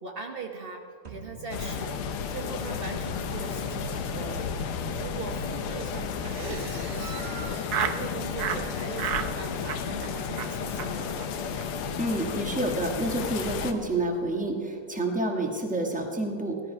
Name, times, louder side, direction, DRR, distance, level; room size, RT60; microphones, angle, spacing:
voice 1, 0.0-4.5 5.0-11.2, right 4 dB, 85° right, 2 dB, 0.5 m, -40 dB
sound 1, 1.0-3.5, right 3 dB, 20° right, 1.2 m, -48 dB
sound 2, 1.5-13.7, left 6 dB, 85° left, 1.8 m, -32 dB
Laughter, 6.2-8.0 8.4-8.6 9.0-9.3 9.6-10.1 10.4-10.5 10.8-10.9 11.2-11.3 11.5-11.7 11.9-12.3, right 8 dB, 65° right, 1.1 m, -33 dB
voice 2, 12.0-16.6, right 1 dB, 5° right, 1 dB, 1.1 m, -29 dB
17.0 x 13.0 x 5.5 m, 2.7 s
omnidirectional pair, 2.4 m